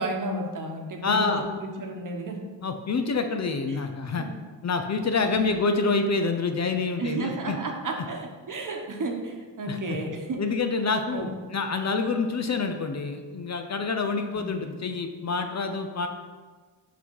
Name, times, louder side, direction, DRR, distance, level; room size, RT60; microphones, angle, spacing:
voice 1, 0.0-2.4 3.7-4.3 5.0-5.5 7.0-10.4 11.1-11.3 14.3-14.5, right 2 dB, 50° right, 3 dB, 1.2 m, -33 dB
voice 2, 1.0-1.4 2.6-4.3 4.6-7.6 9.7-9.8 10.4-16.1, left 4 dB, 40° left, 6 dB, 0.6 m, -27 dB
5.9 x 5.5 x 4.7 m, 1.4 s
cardioid pair, 100°, 42 cm